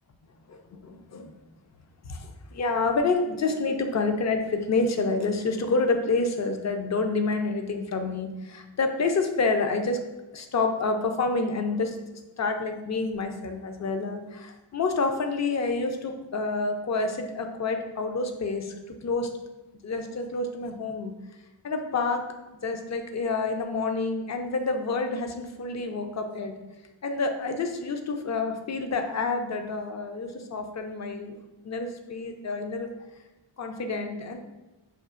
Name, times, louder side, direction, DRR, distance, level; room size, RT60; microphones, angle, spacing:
voice 1, 0.5-1.3 2.0-10.0 10.3-12.0 12.4-18.7 19.0-19.3 19.8-21.1 21.6-22.2 22.6-26.5 27.0-31.4 31.6-32.9 33.6-34.4, left 3 dB, 35° left, 5 dB, 0.5 m, -28 dB
5.6 x 2.4 x 2.4 m, 1.1 s
cardioid pair, 65°, 47 cm